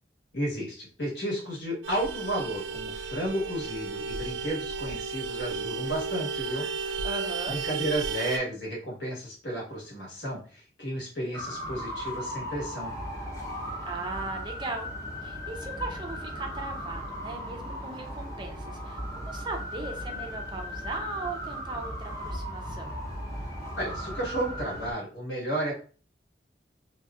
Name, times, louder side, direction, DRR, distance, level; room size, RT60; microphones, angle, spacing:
voice 1, 0.3-6.7 7.5-12.9 23.8-25.7, right 1 dB, 70° left, -3 dB, 1.5 m, -32 dB
Vehicle horn car horn honking, 1.8-8.4, right 5 dB, 85° right, 0.3 m, -33 dB
voice 2, 7.0-7.6 13.8-14.9 15.2-22.9, right 2 dB, 25° right, 2 dB, 0.5 m, -38 dB
sound 1, 11.3-24.9, equal, 20° left, 0.7 m, -37 dB
2.8 x 2.6 x 2.3 m, 0.39 s
head